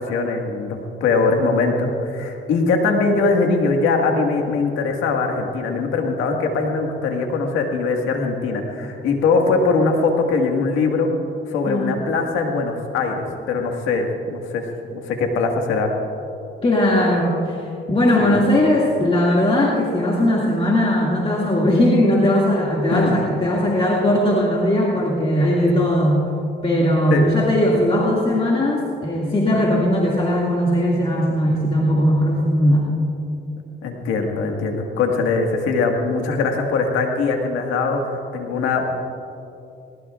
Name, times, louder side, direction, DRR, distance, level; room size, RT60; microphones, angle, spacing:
voice 1, 0.0-11.1 11.5-14.6 14.9-15.9 18.2-18.4 22.9-23.1 27.1-27.4 33.8-38.9, left 4 dB, 90° left, 2 dB, 1.8 m, -21 dB
voice 2, 11.7-12.0 16.6-26.2 26.6-32.9, left 1 dB, 30° left, -4 dB, 2.2 m, -19 dB
21.0 x 19.0 x 2.5 m, 2.7 s
cardioid pair, 90°, 20 cm